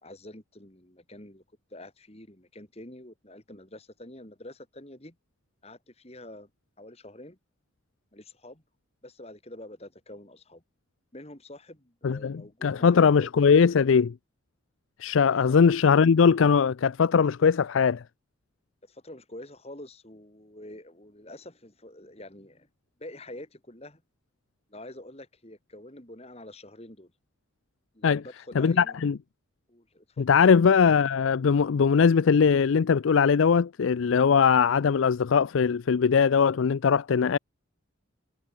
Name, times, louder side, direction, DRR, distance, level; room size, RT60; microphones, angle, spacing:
voice 1, 0.0-1.4 1.7-5.2 5.6-6.5 6.8-7.4 8.1-8.6 9.0-10.6 11.1-13.6 15.4-15.6 18.8-22.7 23.0-24.0 24.7-27.1 27.9-29.1 29.7-30.3, left 1 dB, 30° left, 2.9 m, -46 dB
voice 2, 12.0-14.1 15.0-18.0 28.0-28.2 28.6-29.2 30.2-37.4, left 6 dB, 80° left, 0.4 m, -21 dB
head